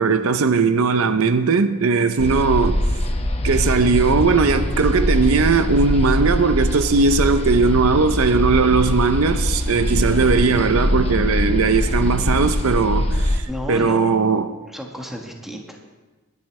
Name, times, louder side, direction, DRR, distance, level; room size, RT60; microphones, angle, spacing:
voice 1, 0.0-2.8 3.4-14.5, right 4 dB, 65° right, 0.6 m, -18 dB
sound 1, 2.2-13.4, left 1 dB, 25° left, 0.9 m, -22 dB
voice 2, 13.5-14.2 14.7-15.9, left 1 dB, ahead, 1.3 m, -32 dB
20.0 x 10.5 x 3.2 m
head